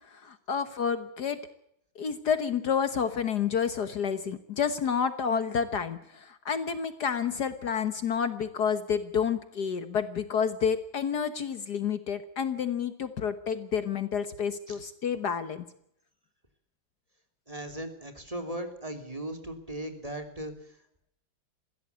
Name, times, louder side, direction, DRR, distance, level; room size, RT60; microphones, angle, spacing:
voice 1, 0.1-1.4 2.0-15.7, left 7 dB, 60° left, 11 dB, 1.7 m, -29 dB
voice 2, 17.5-20.5, right 1 dB, 20° right, 6 dB, 3.1 m, -37 dB
21.5 x 16.5 x 8.2 m, 0.73 s
omnidirectional pair, 2.1 m